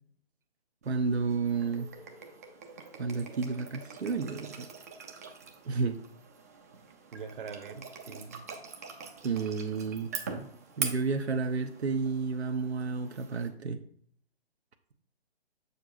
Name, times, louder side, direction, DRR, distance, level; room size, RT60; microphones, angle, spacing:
sound 1, 0.8-13.5, right 5 dB, 15° right, 0.4 m, -43 dB
voice 1, 0.9-1.9 2.9-4.7 5.6-6.0 9.2-10.2 10.8-13.8, right 4 dB, 85° right, 0.7 m, -31 dB
voice 2, 7.1-8.4, right 5 dB, 55° right, 0.9 m, -43 dB
6.6 x 6.5 x 2.6 m
figure-of-eight pair, 135°, 32 cm